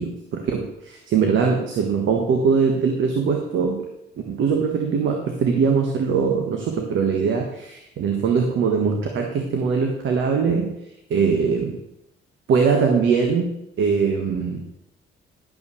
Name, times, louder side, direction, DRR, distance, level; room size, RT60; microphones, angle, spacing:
voice 1, 0.0-3.9 4.3-10.7 11.1-11.8 12.5-14.6, right 5 dB, 75° right, 3 dB, 1.6 m, -21 dB
12.0 x 5.8 x 7.1 m, 0.83 s
cardioid pair, 90°, 20 cm